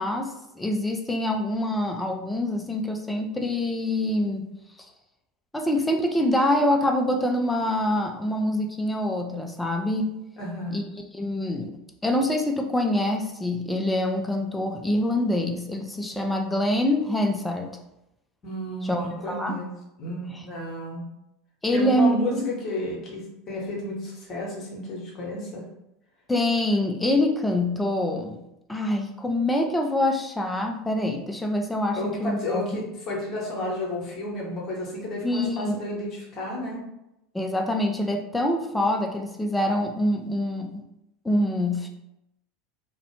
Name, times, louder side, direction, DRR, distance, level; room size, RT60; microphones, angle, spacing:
voice 1, 0.0-4.5 5.5-10.1 10.7-10.8 11.1-11.7 12.0-17.7 18.8-19.5 21.6-22.4 26.3-28.4 28.7-32.6 35.2-35.8 37.3-40.8 41.2-41.9, left 1 dB, 10° left, 3 dB, 0.4 m, -25 dB
voice 2, 10.4-10.9 18.4-19.7 20.0-21.1 21.7-25.6 31.9-36.8, left 1 dB, 40° left, -3 dB, 0.9 m, -32 dB
2.5 x 2.1 x 2.8 m, 0.86 s
figure-of-eight pair, 80°, 0 cm